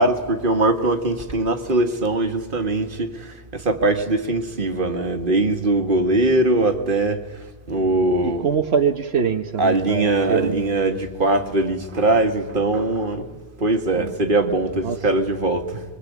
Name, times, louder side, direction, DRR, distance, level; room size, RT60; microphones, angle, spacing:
voice 1, 0.0-7.2 7.7-8.5 9.6-13.3 13.6-15.8, right 2 dB, 55° right, 2.0 m, -21 dB
voice 2, 7.8-10.6 14.0-14.1 14.8-15.0, right 6 dB, 85° right, 1.3 m, -24 dB
25.0 x 23.0 x 8.5 m
omnidirectional pair, 1.0 m